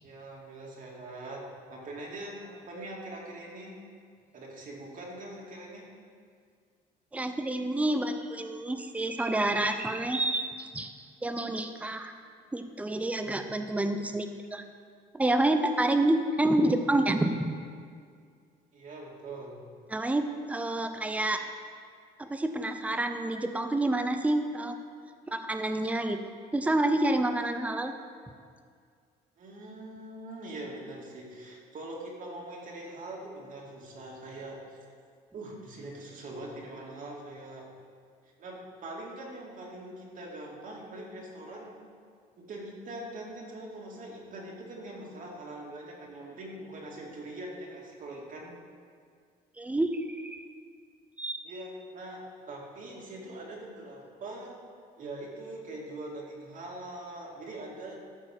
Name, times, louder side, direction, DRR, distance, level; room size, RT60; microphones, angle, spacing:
voice 1, 0.0-3.8 4.3-5.9 18.7-19.6 29.4-34.8 35.3-37.7 38.4-41.8 42.4-48.6 51.4-52.2 52.5-54.6 55.0-58.0, right 1 dB, 50° right, -2 dB, 2.3 m, -42 dB
voice 2, 7.1-10.9 11.2-12.1 12.5-14.6 15.1-17.5 19.9-21.4 22.2-24.8 25.3-26.2 26.5-27.9 49.6-50.4 51.2-51.4, right 1 dB, 10° right, 7 dB, 0.6 m, -28 dB
13.0 x 4.7 x 6.1 m, 2.1 s
cardioid pair, 110°, 17 cm